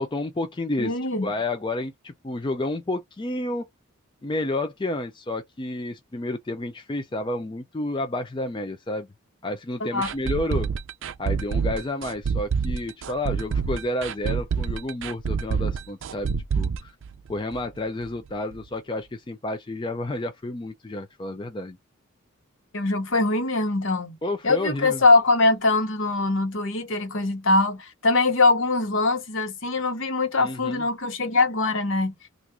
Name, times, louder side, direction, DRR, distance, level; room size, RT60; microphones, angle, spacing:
voice 1, 0.0-0.9 1.2-3.7 4.2-9.1 9.4-10.7 11.2-17.0 17.3-21.8 24.2-25.0 30.4-30.9, left 2 dB, 20° left, 0.4 m, -30 dB
voice 2, 0.8-1.3 9.8-10.1 22.7-24.2 24.4-32.1, left 3 dB, 60° left, 1.1 m, -22 dB
sound 1, 10.0-17.8 18.0-18.1 18.5-18.6, right 6 dB, 60° right, 0.4 m, -27 dB
3.5 x 2.5 x 2.9 m
head